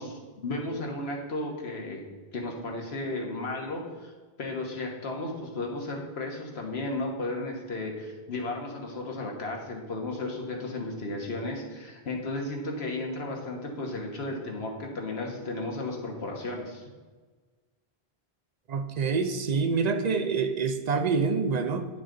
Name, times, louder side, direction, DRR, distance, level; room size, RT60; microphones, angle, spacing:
voice 1, 0.0-2.0 2.3-4.1 4.4-16.9, left 2 dB, 85° left, 0 dB, 1.5 m, -34 dB
voice 2, 18.7-21.9, right 5 dB, 50° right, 7 dB, 0.6 m, -26 dB
9.2 x 5.6 x 3.8 m, 1.4 s
omnidirectional pair, 1.0 m